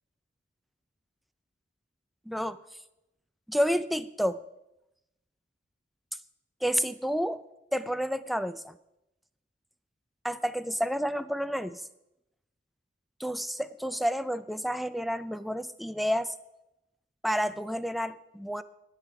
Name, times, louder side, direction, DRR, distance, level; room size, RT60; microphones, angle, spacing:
voice 1, 2.3-2.6 3.5-4.4 6.6-7.4 7.7-8.8 10.2-11.8 13.2-16.3 17.2-18.6, equal, ahead, 12 dB, 0.4 m, -30 dB
20.0 x 7.5 x 5.0 m, 0.90 s
head